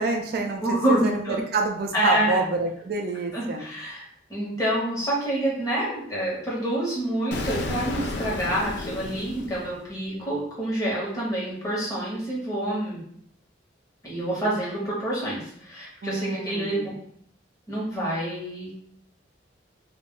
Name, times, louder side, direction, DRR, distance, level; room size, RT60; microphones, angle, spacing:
voice 1, 0.0-3.7 16.0-16.9, right 3 dB, 55° right, 3 dB, 0.3 m, -28 dB
voice 2, 0.6-1.4 1.9-2.4 3.3-4.0 4.3-13.0 14.0-16.8 17.7-18.7, right 1 dB, 20° left, -6 dB, 1.1 m, -27 dB
Explosion, 7.3-10.2, left 2 dB, 65° left, 0.4 m, -32 dB
2.4 x 2.1 x 3.6 m, 0.66 s
head